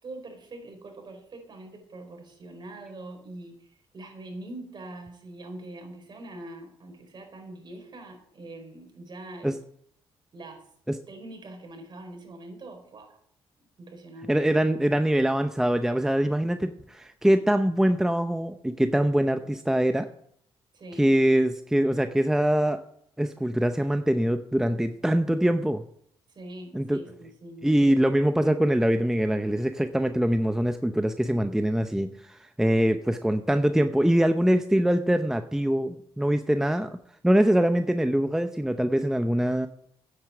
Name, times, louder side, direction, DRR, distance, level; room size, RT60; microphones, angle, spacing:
voice 1, 0.0-9.5 10.3-10.6 11.1-13.2 13.6-14.3 19.4-19.5 20.7-21.1 26.3-28.2, right 2 dB, 45° right, 3 dB, 4.6 m, -43 dB
voice 2, 14.3-20.1 21.0-22.8 23.2-25.8 26.7-27.0 27.6-36.9 37.2-39.7, right 1 dB, 5° right, 8 dB, 0.7 m, -23 dB
9.4 x 8.5 x 7.7 m, 0.66 s
cardioid pair, 80°, 10 cm